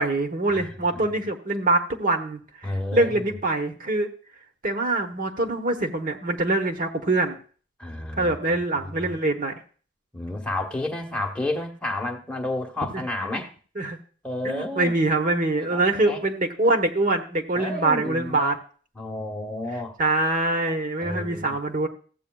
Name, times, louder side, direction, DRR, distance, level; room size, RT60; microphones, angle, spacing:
voice 1, 0.0-4.1 4.6-7.4 8.2-9.5 12.9-13.4 13.8-14.0 14.4-18.6 20.0-21.9, right 2 dB, 45° right, 5 dB, 1.1 m, -24 dB
voice 2, 2.6-3.2 7.8-9.2 10.1-13.5 14.2-14.9 15.7-15.8 16.1-16.2 17.5-18.5 18.9-19.9 21.0-21.5, left 2 dB, 5° left, 1 dB, 1.0 m, -31 dB
15.0 x 8.3 x 2.3 m, 0.41 s
head